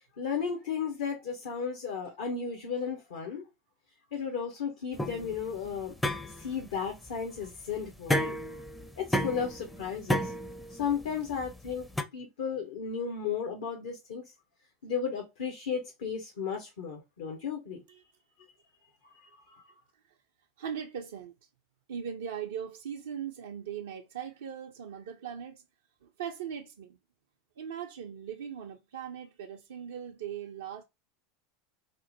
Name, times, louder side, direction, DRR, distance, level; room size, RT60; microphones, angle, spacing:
voice 1, 0.2-3.4 4.1-6.0 6.4-8.3 9.0-10.3 10.7-11.9 12.1-14.3 14.8-17.8 19.5-19.6, left 6 dB, 70° left, 0.8 m, -34 dB
sound 1, 5.0-12.0, left 1 dB, 10° left, 0.5 m, -33 dB
voice 2, 18.8-19.3 20.6-21.3 21.9-25.6 26.0-27.0 27.6-30.8, right 8 dB, 75° right, 0.4 m, -40 dB
2.9 x 2.0 x 2.7 m
hypercardioid pair, 85°, 0 cm